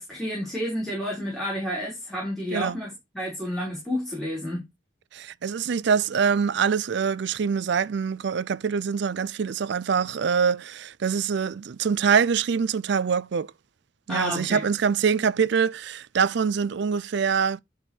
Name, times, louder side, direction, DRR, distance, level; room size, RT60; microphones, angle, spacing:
voice 1, 0.0-4.7 14.1-14.6, equal, ahead, 3.9 m, -30 dB
voice 2, 5.1-13.5 14.1-17.6, right 6 dB, 60° right, 0.4 m, -24 dB
10.5 x 4.7 x 4.5 m
head